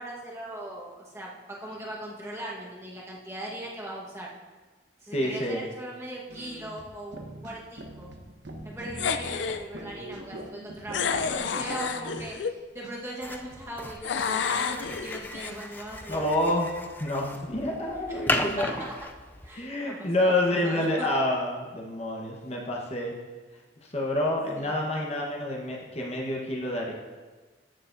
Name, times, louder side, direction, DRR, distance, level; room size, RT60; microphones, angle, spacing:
voice 1, 0.0-4.3 5.0-8.1 8.6-16.3 18.1-18.9 19.4-21.1 24.6-24.7, right 1 dB, 15° right, -5 dB, 1.3 m, -39 dB
voice 2, 5.1-5.6 16.1-16.7 17.0-18.7 19.5-23.1 23.9-26.9, left 1 dB, 35° left, -2 dB, 1.2 m, -28 dB
sound 1, 6.3-12.5 12.8-12.9 13.2-15.2 15.5-15.6 15.9-16.3, right 1 dB, 85° right, 1.0 m, -44 dB
sound 2, 9.0-9.6 10.9-12.6 14.0-15.5, left 6 dB, 90° left, 0.4 m, -29 dB
sound 3, 13.2-19.6, left 2 dB, 10° left, 0.4 m, -35 dB
14.0 x 6.8 x 2.7 m, 1.3 s
head